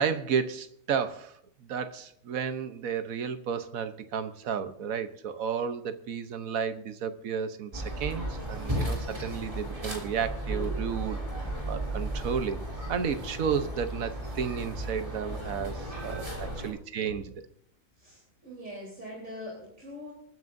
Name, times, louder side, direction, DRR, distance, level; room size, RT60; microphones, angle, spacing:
voice 1, 0.0-1.3 1.6-12.6 12.9-17.3, right 7 dB, 85° right, 10 dB, 1.4 m, -32 dB
sound 1, 7.7-16.7, right 1 dB, 25° right, 3.3 m, -34 dB
voice 2, 18.0-20.1, equal, 70° right, -4 dB, 4.2 m, -43 dB
28.0 x 9.4 x 2.6 m, 0.65 s
omnidirectional pair, 1.4 m